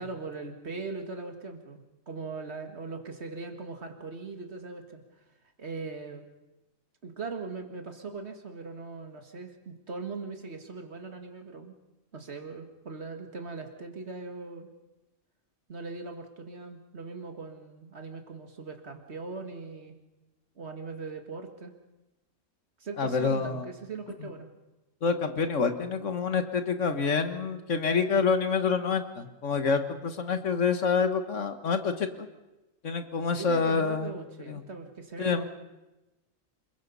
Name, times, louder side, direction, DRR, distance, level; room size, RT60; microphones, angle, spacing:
voice 1, 0.0-5.0 5.6-6.2 7.0-11.7 12.1-14.7 15.7-20.0 20.6-21.7 22.8-24.5 33.3-35.4, right 4 dB, 50° right, 5 dB, 2.2 m, -40 dB
voice 2, 23.0-23.6 25.0-32.3 32.8-34.1 34.5-34.6 35.2-35.4, left 5 dB, 65° left, 8 dB, 1.8 m, -27 dB
27.0 x 22.0 x 5.5 m, 1.0 s
omnidirectional pair, 1.4 m